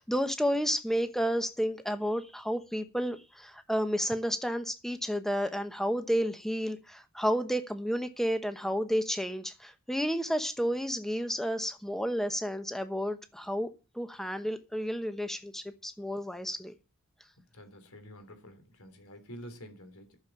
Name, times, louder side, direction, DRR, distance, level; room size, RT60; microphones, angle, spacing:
voice 1, 0.0-13.7 13.9-16.7, equal, ahead, 1.0 m, -31 dB
voice 2, 17.5-20.2, equal, 80° left, 3.2 m, -48 dB
11.0 x 7.0 x 8.7 m
head